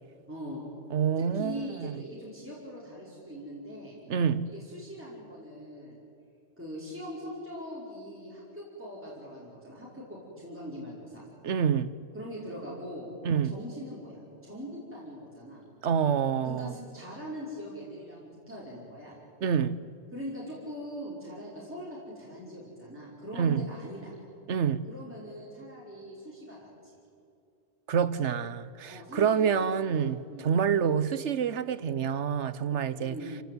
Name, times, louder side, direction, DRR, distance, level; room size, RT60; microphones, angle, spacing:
voice 1, 0.3-0.7 1.3-4.0 4.5-6.0 6.6-11.3 12.1-13.1 13.4-15.6 16.4-19.2 20.1-24.2 24.9-27.0 28.8-30.5 32.9-33.3, equal, 10° right, 5.4 m, -42 dB
voice 2, 0.9-2.0 4.1-4.5 11.4-11.9 13.2-13.5 15.8-16.7 19.4-19.8 23.3-23.6 24.5-24.8 27.9-33.2, right 7 dB, 85° right, 1.2 m, -27 dB
28.0 x 18.5 x 9.5 m
omnidirectional pair, 1.2 m